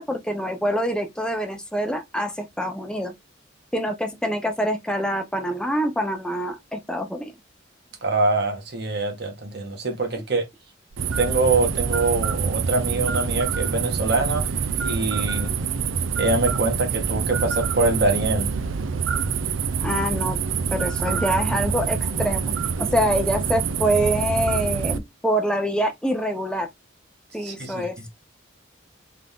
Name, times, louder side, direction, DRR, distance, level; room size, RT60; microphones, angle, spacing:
voice 1, 0.0-3.1 3.7-7.3 19.8-20.4 20.7-26.7 27.3-27.9, equal, 5° left, 0.7 m, -25 dB
voice 2, 8.0-10.5 11.2-15.5 16.2-18.5 27.4-28.0, right 2 dB, 55° right, 1.5 m, -24 dB
sound 1, 10.9-25.0, right 6 dB, 90° right, 0.5 m, -26 dB
3.7 x 3.5 x 3.6 m
head